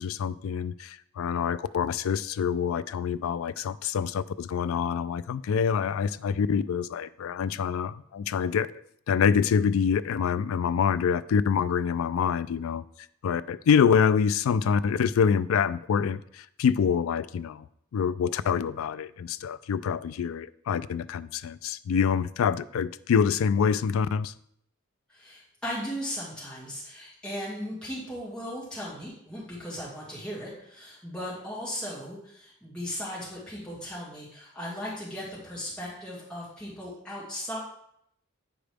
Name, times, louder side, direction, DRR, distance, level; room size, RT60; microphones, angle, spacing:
voice 1, 0.0-8.7 9.1-12.8 13.2-17.7 17.9-24.3, left 7 dB, 85° left, 0.3 m, -26 dB
voice 2, 25.1-37.6, equal, 5° left, 2.1 m, -37 dB
8.9 x 5.0 x 3.4 m
head